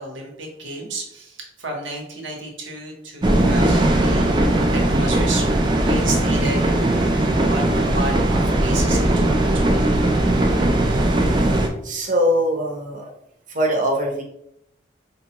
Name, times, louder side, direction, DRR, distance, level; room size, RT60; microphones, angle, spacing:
voice 1, 0.0-5.5 5.7-6.7 7.5-9.9, right 2 dB, 80° right, 0 dB, 1.0 m, -31 dB
sound 1, 3.2-11.7, right 1 dB, 25° right, 0.4 m, -19 dB
voice 2, 10.6-10.9 11.6-13.0 13.5-14.2, equal, 45° right, 0 dB, 0.8 m, -23 dB
4.7 x 2.3 x 2.9 m, 0.74 s
head